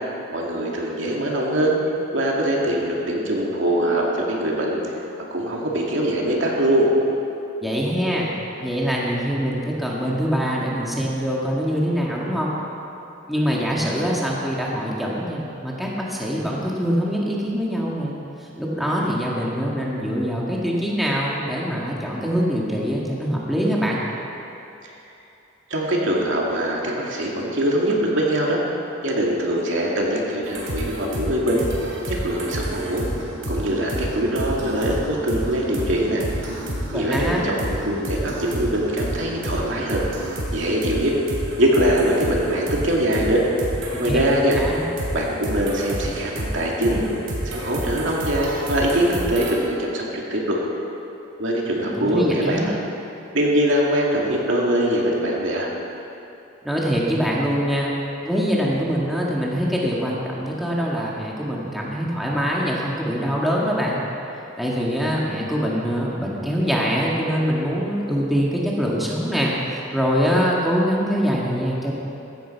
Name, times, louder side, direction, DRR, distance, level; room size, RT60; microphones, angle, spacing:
voice 1, 0.3-1.8 2.1-4.8 5.3-6.9 25.7-28.6 29.0-31.7 32.1-33.0 33.5-36.2 36.9-40.0 40.5-41.1 41.6-43.4 44.0-44.6 45.1-50.6 51.4-52.8 53.3-55.7, right 1 dB, 65° right, -3 dB, 2.4 m, -22 dB
voice 2, 7.6-8.3 8.6-12.6 13.3-18.1 18.4-24.0 36.9-37.5 43.9-44.2 44.6-44.8 51.8-52.7 56.6-57.9 58.2-64.0 64.6-71.9, equal, ahead, -5 dB, 1.7 m, -24 dB
sound 1, 30.4-49.5, right 1 dB, 85° right, 3.5 m, -30 dB
15.5 x 14.5 x 4.6 m, 2.9 s
head